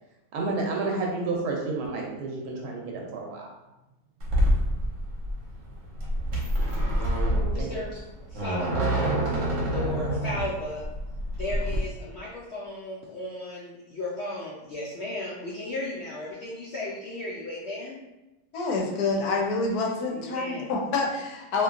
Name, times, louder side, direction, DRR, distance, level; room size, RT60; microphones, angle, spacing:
voice 1, 0.3-3.5 7.6-7.8, right 3 dB, 85° right, -1 dB, 1.1 m, -30 dB
sound 1, 4.2-11.8, equal, 60° right, 1.0 m, -26 dB
voice 2, 7.5-8.0 8.3-8.7 9.3-10.8 11.4-18.0 20.2-20.7, left 2 dB, 65° left, -7 dB, 0.7 m, -35 dB
voice 3, 18.5-21.6, left 3 dB, 85° left, 0 dB, 1.1 m, -27 dB
3.0 x 2.6 x 2.4 m, 1.0 s
omnidirectional pair, 1.6 m